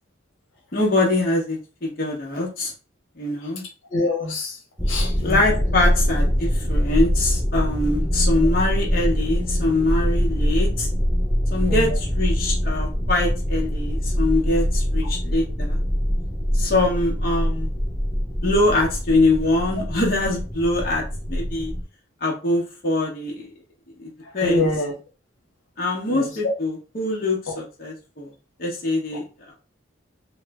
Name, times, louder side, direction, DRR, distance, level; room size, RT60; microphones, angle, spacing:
voice 1, 0.7-2.7 3.2-3.6 5.2-10.9 11.5-15.8 16.5-17.7 18.4-21.7 22.2-23.5 24.0-24.7 25.8-28.3 28.6-29.6, left 2 dB, 50° left, 0.8 m, -23 dB
voice 2, 3.9-4.6 4.9-5.4 11.7-11.9 19.8-19.9 24.4-24.9 26.1-26.3 27.5-27.6, left 2 dB, 80° left, 0.9 m, -25 dB
sound 1, 4.8-21.8, equal, ahead, 0.5 m, -23 dB
3.0 x 2.1 x 3.4 m
head